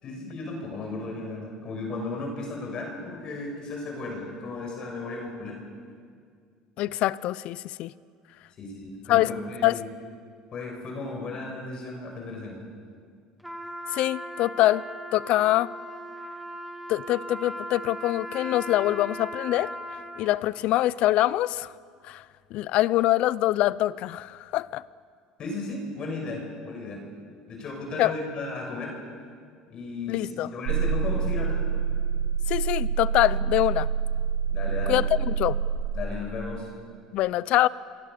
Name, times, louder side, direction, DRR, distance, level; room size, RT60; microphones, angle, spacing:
voice 1, 0.0-5.6 8.6-9.9 10.5-12.6 25.4-27.0 27.5-29.0 29.7-31.7 34.5-34.9 35.9-36.7, left 3 dB, 40° left, 1 dB, 6.6 m, -35 dB
voice 2, 6.8-7.9 9.1-9.3 9.6-9.8 13.9-14.8 15.1-15.7 16.9-19.7 20.2-21.7 22.0-22.2 22.5-24.8 28.0-28.1 30.1-30.5 32.5-33.9 34.9-35.6 37.1-37.7, left 15 dB, 60° left, 19 dB, 0.7 m, -24 dB
Trumpet, 13.4-20.4, equal, 5° right, 2.6 m, -38 dB
sound 1, 30.7-35.8, right 7 dB, 75° right, 3.1 m, -26 dB
28.5 x 23.0 x 6.9 m, 2.2 s
cardioid pair, 125°, 2 cm